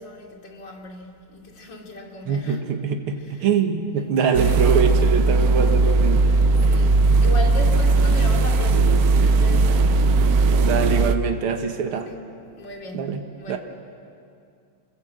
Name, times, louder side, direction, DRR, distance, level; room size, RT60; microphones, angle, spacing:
voice 1, 0.0-2.6 3.1-3.5 4.0-4.7 6.6-10.3 12.0-12.2 12.6-13.6, left 2 dB, 55° left, 1 dB, 3.2 m, -37 dB
voice 2, 2.3-6.2 10.6-12.1 12.9-13.6, right 6 dB, 85° right, 5 dB, 2.2 m, -24 dB
sound 1, 4.3-11.2, right 3 dB, 60° right, 1.1 m, -18 dB
28.0 x 22.0 x 7.7 m, 2.4 s
omnidirectional pair, 2.3 m